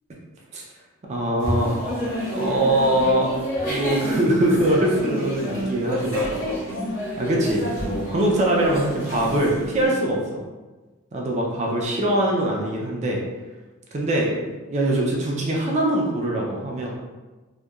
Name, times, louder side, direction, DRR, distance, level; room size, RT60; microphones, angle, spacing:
voice 1, 1.1-1.8 2.3-3.3 3.6-6.3 7.2-10.4 11.1-13.2 13.9-16.9, right 1 dB, 30° right, -2 dB, 0.4 m, -23 dB
sound 1, 1.4-9.9, equal, 40° left, 1.0 m, -28 dB
2.7 x 2.2 x 2.3 m, 1.2 s
head